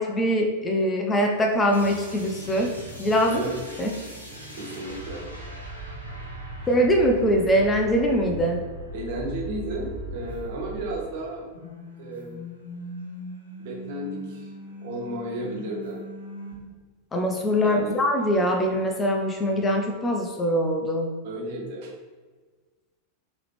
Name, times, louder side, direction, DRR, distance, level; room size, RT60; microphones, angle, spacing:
voice 1, 0.0-2.7 3.0-3.4 3.8-3.9 6.7-8.6 17.1-21.1, equal, 15° left, 2 dB, 0.5 m, -22 dB
sound 1, 1.7-11.2 11.5-16.5, right 1 dB, 85° left, 0.7 m, -39 dB
voice 2, 3.2-3.5 4.5-5.5 6.6-6.7 8.9-11.4 12.0-12.4 13.6-14.5 14.8-16.0 17.6-18.0 21.2-21.9, right 1 dB, 50° right, -1 dB, 0.9 m, -33 dB
3.8 x 3.0 x 3.2 m, 1.3 s
figure-of-eight pair, 90°, 0 cm